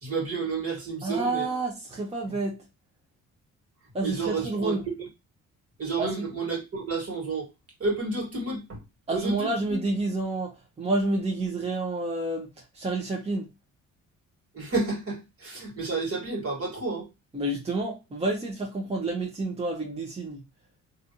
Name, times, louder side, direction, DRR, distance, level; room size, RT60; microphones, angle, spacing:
voice 1, 0.0-1.5 4.0-4.8 5.8-7.5 7.8-8.8 9.1-9.5 14.5-17.1, right 3 dB, 50° right, 1.8 m, -30 dB
voice 2, 1.0-2.6 3.9-4.8 6.0-6.3 9.1-13.5 17.3-20.4, right 2 dB, 20° right, 0.9 m, -29 dB
3.2 x 2.6 x 2.6 m
cardioid pair, 90°, 30 cm